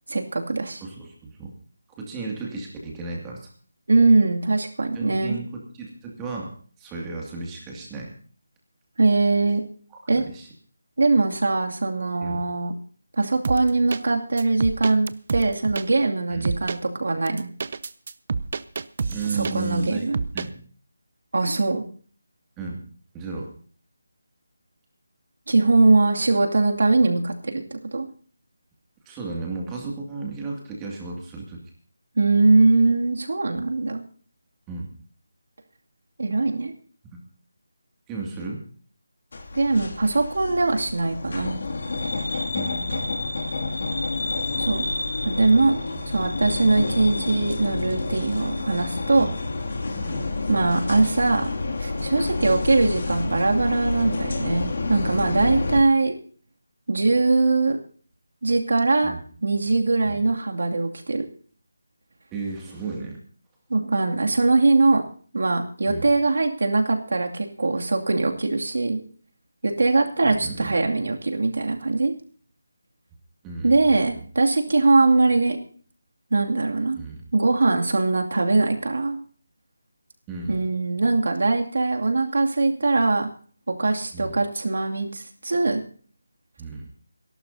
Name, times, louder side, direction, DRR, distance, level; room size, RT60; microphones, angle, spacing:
voice 1, 0.1-0.8 3.9-5.4 9.0-9.6 10.1-10.2 11.0-12.7 13.2-17.5 19.5-20.2 21.3-21.8 25.5-28.1 32.2-34.0 36.2-36.7 39.5-41.6 44.6-44.8 45.2-45.8 46.1-49.3 50.5-51.5 51.8-56.1 56.9-57.8 58.4-59.1 59.4-61.3 63.7-65.0 65.3-69.0 69.6-72.1 73.6-75.6 76.3-77.0 77.3-79.2 80.5-83.3 83.8-85.8, right 3 dB, 70° right, 2 dB, 2.5 m, -21 dB
voice 2, 0.8-1.5 2.0-3.5 4.9-6.5 6.8-8.1 9.9-10.5 12.2-12.4 16.3-16.5 19.1-20.0 20.3-20.6 22.6-22.9 23.1-23.5 29.1-31.6 34.7-34.9 38.1-38.6 42.5-43.1 43.9-44.0 45.9-46.0 49.2-49.3 49.9-50.4 59.0-59.2 60.0-60.2 62.3-63.2 65.9-66.1 70.2-70.7 73.4-74.2 77.0-77.2 80.3-80.7 84.1-84.4 86.6-86.9, right 3 dB, 10° right, -1 dB, 2.3 m, -34 dB
sound 1, 13.4-14.0 14.4-15.9 16.5-16.8 17.3-19.8 20.1-20.5, right 4 dB, 45° right, 0.6 m, -29 dB
sound 2, 39.3-55.8, left 3 dB, 55° left, 2.5 m, -29 dB
25.5 x 12.0 x 2.8 m, 0.44 s
figure-of-eight pair, 165°, 0 cm